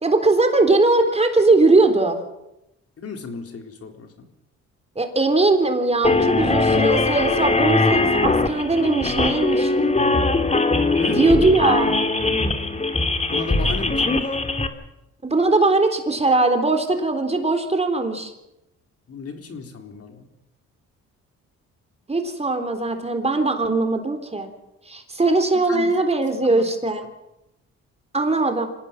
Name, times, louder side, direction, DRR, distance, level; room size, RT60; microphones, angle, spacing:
voice 1, 0.0-2.2 5.0-9.7 11.1-11.9 15.2-18.3 22.1-24.5 24.9-27.0 28.1-28.7, right 2 dB, 20° right, 6 dB, 3.7 m, -20 dB
voice 2, 3.0-4.3 11.0-11.3 13.3-14.4 19.1-20.3 25.7-25.9 26.4-26.6, left 4 dB, 50° left, 5 dB, 3.8 m, -34 dB
sound 1, 6.0-14.7, left 3 dB, 20° left, 2.5 m, -21 dB
25.5 x 17.5 x 7.4 m, 0.89 s
cardioid pair, 90°, 30 cm